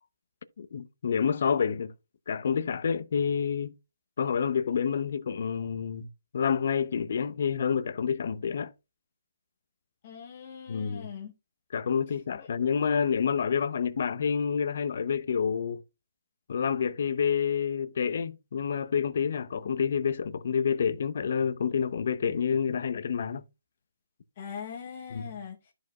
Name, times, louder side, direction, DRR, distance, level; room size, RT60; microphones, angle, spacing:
voice 1, 0.6-1.9 2.3-3.7 4.2-6.1 6.3-8.7 10.7-11.1 11.7-15.8 16.5-23.4 25.1-25.3, left 7 dB, 50° left, 0.7 m, -28 dB
voice 2, 10.0-11.3 24.4-25.6, left 7 dB, 35° left, 1.0 m, -41 dB
13.0 x 4.8 x 2.3 m
hypercardioid pair, 170°, 0 cm